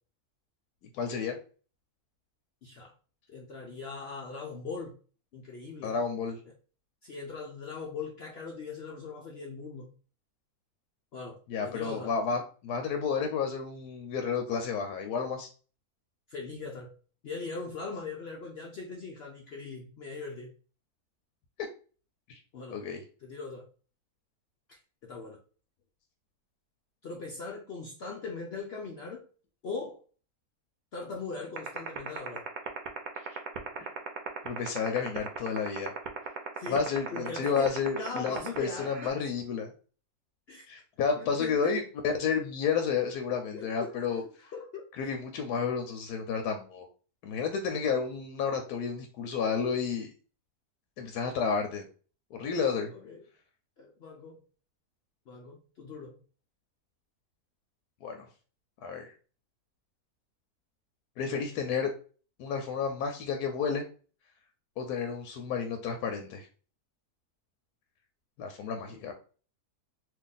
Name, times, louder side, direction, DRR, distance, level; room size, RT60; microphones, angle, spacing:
voice 1, 0.9-1.4 5.8-6.4 11.5-15.5 22.3-22.4 22.7-23.0 33.2-33.4 33.8-33.9 34.4-35.9 36.7-39.7 40.7-44.5 44.9-46.9 47.2-50.1 51.0-51.9 52.3-52.9 58.0-58.3 58.8-59.1 61.2-61.9 62.4-63.8 64.8-66.5 68.4-69.1, left 6 dB, 85° left, 5 dB, 1.1 m, -31 dB
voice 2, 2.6-2.9 3.3-4.9 5.3-6.0 7.0-9.9 11.1-12.1 16.3-16.9 17.2-20.5 22.5-22.8 23.2-23.6 24.7-25.4 27.0-29.3 29.6-30.0 30.9-32.5 36.6-36.9 37.1-39.1 40.5-40.6 41.2-41.8 43.5-43.9 44.5-44.8 52.9-53.2 53.8-54.4 55.3-56.2 68.9-69.1, left 4 dB, 65° left, 0 dB, 0.6 m, -40 dB
sound 1, 31.6-39.1, right 11 dB, 70° right, 1.1 m, -34 dB
2.8 x 2.5 x 3.8 m, 0.39 s
omnidirectional pair, 1.6 m